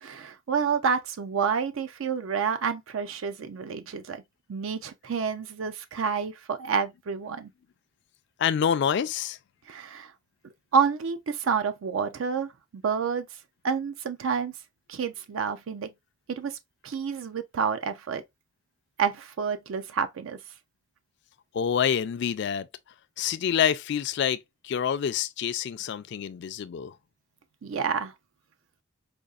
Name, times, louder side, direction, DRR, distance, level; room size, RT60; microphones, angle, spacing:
voice 1, 0.0-4.2 4.5-7.5 9.7-10.1 10.7-13.3 13.6-14.5 14.9-15.9 16.3-16.6 16.8-18.2 19.0-20.4 27.6-28.1, right 6 dB, 80° right, 0.4 m, -29 dB
voice 2, 8.4-9.4 21.5-22.7 23.2-26.9, left 8 dB, 60° left, 0.3 m, -27 dB
5.0 x 2.4 x 2.3 m
head